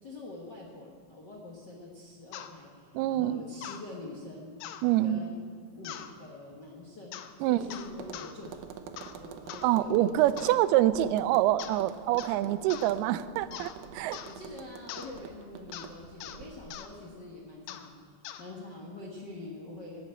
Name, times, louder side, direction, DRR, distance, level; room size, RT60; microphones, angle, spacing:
voice 1, 0.0-4.5 5.0-5.4 5.7-8.7 9.1-10.6 14.2-17.9 18.4-20.1, left 2 dB, 60° left, -2 dB, 1.1 m, -45 dB
sound 1, 2.3-2.5 3.6-3.8 4.6-4.9 5.8-6.1 7.1-7.3 7.7-8.3 9.0-9.2 9.5-9.7 10.4-10.6 11.6-11.8 12.2-12.4 12.7-12.9 13.5-13.8 14.1-14.4 14.9-15.1 15.7-15.9 16.2-16.4 16.7-16.9 17.7-17.9 18.2-18.4, left 11 dB, 85° left, 2.6 m, -42 dB
voice 2, 2.9-3.4 4.8-5.2 7.4-7.6 9.6-14.2, right 13 dB, 90° right, 15 dB, 2.5 m, -26 dB
Tap, 7.5-16.8, right 7 dB, 75° right, 1.9 m, -47 dB
17.0 x 7.1 x 8.8 m, 2.1 s
omnidirectional pair, 4.4 m